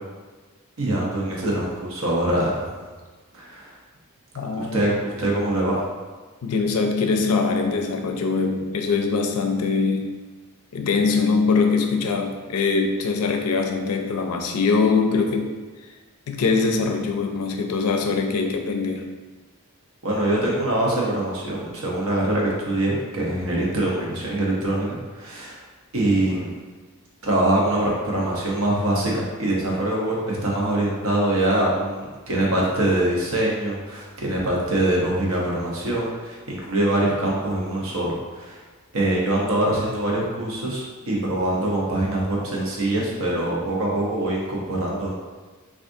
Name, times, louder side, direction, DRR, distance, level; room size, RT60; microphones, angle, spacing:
voice 1, 0.8-2.8 3.3-3.8 4.6-5.8 20.0-25.6 25.9-26.5 27.2-38.6 38.9-45.2, right 1 dB, 70° right, -3 dB, 0.7 m, -24 dB
voice 2, 4.3-4.9 6.4-10.1 10.7-15.5 16.3-19.1, left 4 dB, 90° left, 4 dB, 0.4 m, -22 dB
3.5 x 2.4 x 2.6 m, 1.3 s
head